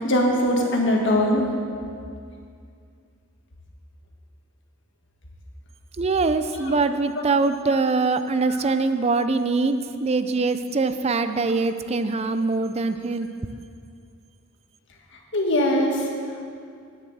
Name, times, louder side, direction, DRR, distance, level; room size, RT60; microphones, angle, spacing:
voice 1, 0.0-1.5 6.5-6.8 8.5-8.6 15.3-16.0, left 1 dB, 60° left, 0 dB, 1.7 m, -21 dB
voice 2, 6.0-13.3, right 3 dB, 30° right, 10 dB, 0.4 m, -23 dB
9.6 x 7.3 x 7.9 m, 2.3 s
head